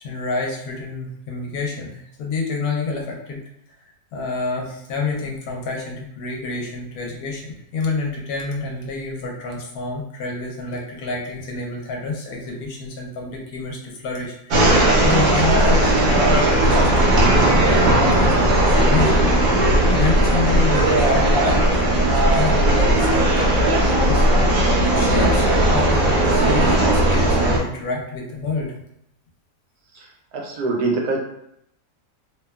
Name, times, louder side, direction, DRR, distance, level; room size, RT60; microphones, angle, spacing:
voice 1, 0.0-3.4 4.1-19.3 19.5-26.7 26.9-28.7, left 3 dB, 70° left, -1 dB, 1.0 m, -28 dB
sound 1, 14.5-27.6, right 1 dB, 70° right, 1.1 m, -17 dB
voice 2, 30.3-31.2, right 3 dB, 90° right, 0 dB, 1.2 m, -23 dB
2.8 x 2.2 x 2.2 m, 0.75 s
omnidirectional pair, 1.7 m